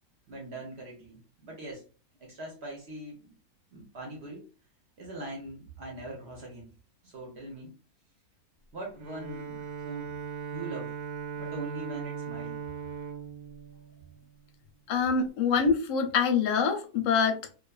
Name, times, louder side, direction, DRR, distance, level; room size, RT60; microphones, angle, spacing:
voice 1, 0.3-1.8 2.2-3.3 3.7-4.5 5.0-6.7 7.0-7.7 8.7-10.1 10.5-10.9 11.4-12.6, right 1 dB, 55° right, -1 dB, 0.8 m, -41 dB
Bowed string instrument, 9.0-14.6, right 6 dB, 85° right, 1.2 m, -39 dB
voice 2, 14.9-17.6, left 5 dB, 70° left, 5 dB, 0.8 m, -25 dB
2.5 x 2.4 x 2.2 m, 0.36 s
omnidirectional pair, 1.6 m